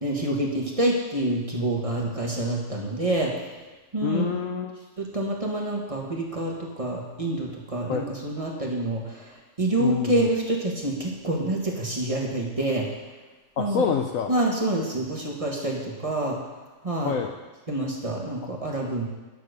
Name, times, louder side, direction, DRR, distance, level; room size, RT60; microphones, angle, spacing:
voice 1, 0.0-3.3 3.9-4.3 5.0-12.9 13.6-13.9 14.3-16.4 16.8-17.2 17.7-19.0, right 1 dB, 20° right, -2 dB, 1.4 m, -27 dB
voice 2, 4.0-4.8 7.9-8.0 9.8-10.3 13.6-14.3 17.0-17.3, left 7 dB, 65° left, 4 dB, 0.9 m, -27 dB
10.5 x 6.6 x 6.6 m, 1.2 s
omnidirectional pair, 1.8 m